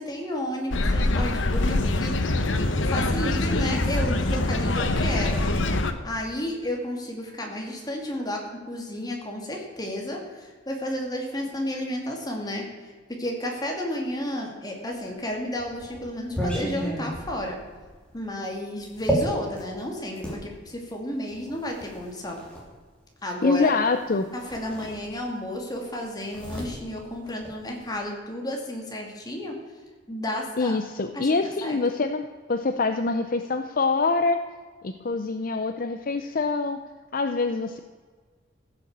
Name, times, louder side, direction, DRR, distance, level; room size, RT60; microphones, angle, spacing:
voice 1, 0.0-2.5 2.8-5.4 6.0-12.9 13.2-17.6 18.1-22.4 23.2-23.7 24.3-29.5 30.1-30.8 31.1-31.8, left 1 dB, 20° left, 1 dB, 2.5 m, -32 dB
sound 1, 0.7-5.9, left 2 dB, 80° left, 1.0 m, -24 dB
sound 2, 15.1-20.4 21.3-22.7 23.9-24.0 24.3-25.5 25.7-28.0, right 1 dB, 5° left, 3.0 m, -33 dB
voice 2, 23.4-24.3 30.6-34.4 34.8-36.8 37.1-37.8, left 3 dB, 50° left, 8 dB, 0.6 m, -25 dB
15.0 x 6.8 x 7.4 m, 1.5 s
head